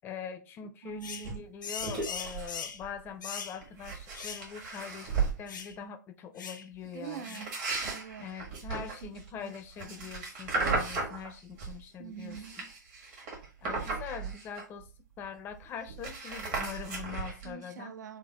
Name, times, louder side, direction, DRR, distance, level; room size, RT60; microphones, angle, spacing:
voice 1, 0.0-7.4 8.2-12.7 13.6-14.9 15.2-17.9, left 7 dB, 20° left, 0.3 m, -43 dB
voice 2, 0.8-1.5 6.8-8.3 8.8-9.1 9.4-9.5 9.8-10.1 12.0-12.6 17.4-18.2, right 9 dB, 65° right, 0.4 m, -45 dB
sound 1, 1.0-1.3 1.6-2.8 3.2-3.6 4.1-4.5 4.7-4.8 5.5-5.7 6.4-6.6 7.2-7.5, left 6 dB, 80° left, 0.5 m, -40 dB
sound 2, 1.2-1.4 1.8-2.6 2.8-3.1 3.6-5.4 7.0-11.8 12.2-14.9 15.2-15.3 15.5-17.5, right 4 dB, 40° right, 1.2 m, -35 dB
3.2 x 2.0 x 3.8 m
hypercardioid pair, 125°, 10 cm